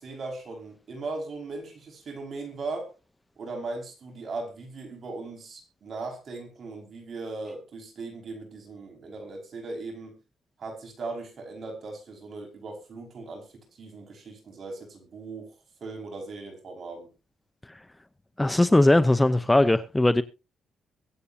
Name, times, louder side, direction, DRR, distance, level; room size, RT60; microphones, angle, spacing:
voice 1, 0.0-2.9 3.4-10.2 10.6-15.5 15.8-17.1, right 3 dB, 50° right, 5.3 m, -38 dB
voice 2, 18.4-20.2, left 1 dB, 10° left, 0.7 m, -19 dB
23.0 x 8.5 x 2.8 m
cardioid pair, 90°, 0 cm